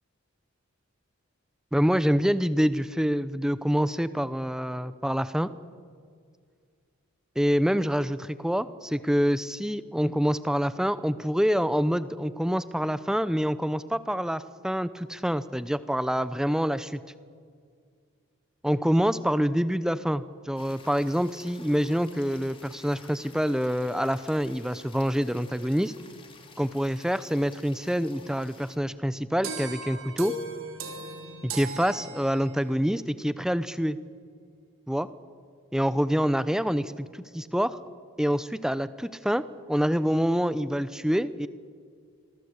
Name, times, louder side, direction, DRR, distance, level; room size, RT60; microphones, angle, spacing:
voice 1, 1.7-5.5 7.4-17.0 18.6-25.9 26.6-30.3 31.4-34.0 34.9-35.1 35.7-37.8 38.2-41.5, equal, 5° right, 14 dB, 0.6 m, -26 dB
small-forest-stream-in-mountains-surround-sound-rear, 20.6-28.8, left 4 dB, 25° left, 2.6 m, -52 dB
sound 1, 29.4-32.7, right 3 dB, 70° right, 3.4 m, -37 dB
27.0 x 22.0 x 8.2 m, 2.1 s
head